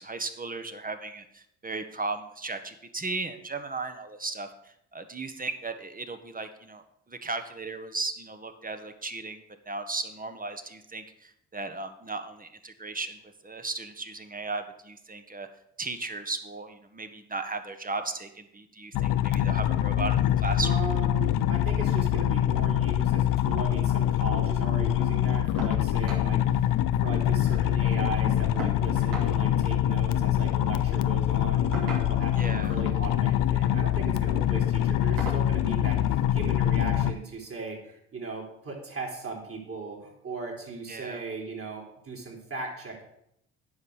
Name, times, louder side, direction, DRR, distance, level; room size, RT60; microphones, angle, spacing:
voice 1, 0.0-15.5 15.8-20.8 32.3-32.8 40.9-41.2, right 3 dB, 25° right, 8 dB, 1.3 m, -36 dB
sound 1, 18.9-37.1, left 12 dB, 65° left, 0.6 m, -25 dB
voice 2, 20.6-43.0, right 4 dB, 40° right, -1 dB, 3.6 m, -38 dB
sound 2, 25.6-25.8 26.1-26.3 26.7-26.8 27.0-27.7 28.6-29.3 30.6-30.8 31.7-32.4 33.4-33.7 34.2-34.4 35.2-35.5 36.8-36.9 37.4-37.5, right 2 dB, 70° right, 2.8 m, -39 dB
9.5 x 5.5 x 6.5 m, 0.76 s
hypercardioid pair, 55°, 35 cm